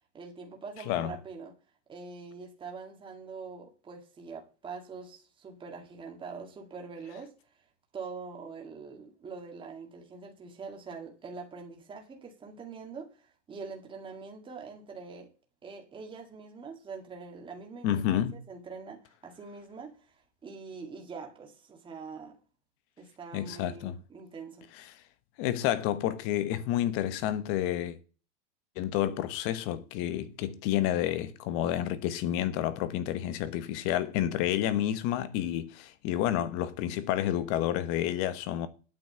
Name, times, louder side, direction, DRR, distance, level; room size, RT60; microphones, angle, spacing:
voice 1, 0.1-1.5 1.9-7.3 7.9-15.3 15.6-20.1 20.4-22.4 23.0-24.7, right 4 dB, 15° right, 1.9 m, -44 dB
voice 2, 17.8-18.4 23.3-24.0 25.4-28.0 28.8-38.7, left 12 dB, 40° left, 1.2 m, -30 dB
8.8 x 6.2 x 7.6 m
supercardioid pair, 145°, 35 cm